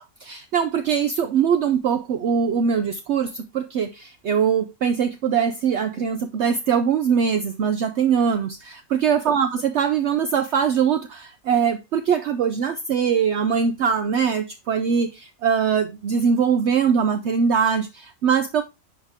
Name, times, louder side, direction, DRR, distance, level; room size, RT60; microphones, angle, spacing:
voice 1, 0.0-18.6, right 7 dB, 60° right, 0.9 m, -22 dB
11.0 x 4.3 x 3.5 m
omnidirectional pair, 1.4 m